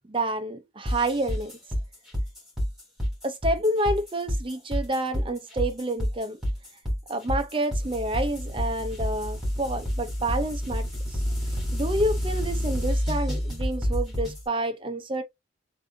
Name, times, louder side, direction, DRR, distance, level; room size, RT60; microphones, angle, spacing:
voice 1, 0.1-1.5 3.2-6.4 7.1-15.2, right 1 dB, 25° right, 0.6 m, -29 dB
sound 1, 0.9-14.4, equal, ahead, 2.8 m, -29 dB
7.2 x 2.7 x 2.7 m
head